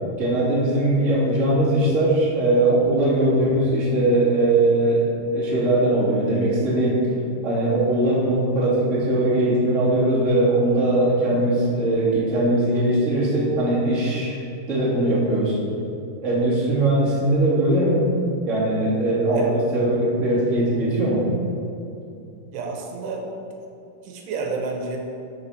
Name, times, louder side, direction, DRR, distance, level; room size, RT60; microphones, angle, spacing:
voice 1, 0.2-7.0 7.4-14.4 14.7-15.6 16.2-18.0 18.5-21.3, right 1 dB, 25° right, -7 dB, 1.7 m, -20 dB
voice 2, 22.5-23.3 24.0-25.0, right 4 dB, 80° right, 1 dB, 3.0 m, -29 dB
13.0 x 5.3 x 4.2 m, 2.6 s
omnidirectional pair, 4.7 m